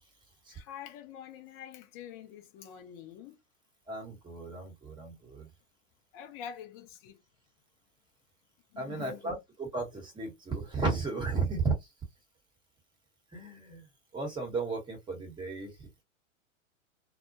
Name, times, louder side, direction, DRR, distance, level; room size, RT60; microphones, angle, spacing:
voice 1, 0.5-3.4 6.1-7.2 8.7-9.4, left 9 dB, 30° left, 0.6 m, -46 dB
voice 2, 3.9-5.5 8.8-11.7 13.3-13.8 14.1-16.0, right 4 dB, 10° right, 1.0 m, -34 dB
2.2 x 2.1 x 2.6 m
hypercardioid pair, 110°, 39 cm